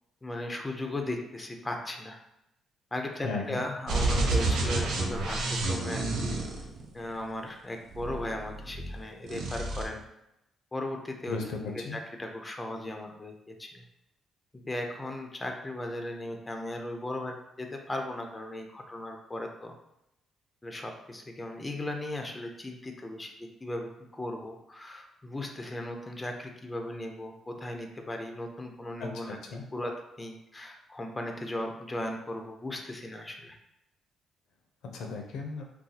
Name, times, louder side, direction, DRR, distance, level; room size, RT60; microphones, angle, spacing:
voice 1, 0.2-2.2 2.9-6.3 6.9-10.0 10.7-11.4 11.9-13.8 14.5-19.7 20.6-29.4 29.7-29.9 30.2-33.6, left 1 dB, 15° left, 3 dB, 0.5 m, -37 dB
voice 2, 3.2-3.6 11.3-12.0 29.0-29.6 34.9-35.6, left 4 dB, 80° left, 2 dB, 0.5 m, -36 dB
sound 1, 3.9-7.2 7.9-9.0 9.2-9.9, right 2 dB, 80° right, 0.7 m, -29 dB
2.6 x 2.3 x 3.9 m, 0.86 s
cardioid pair, 90°, 0 cm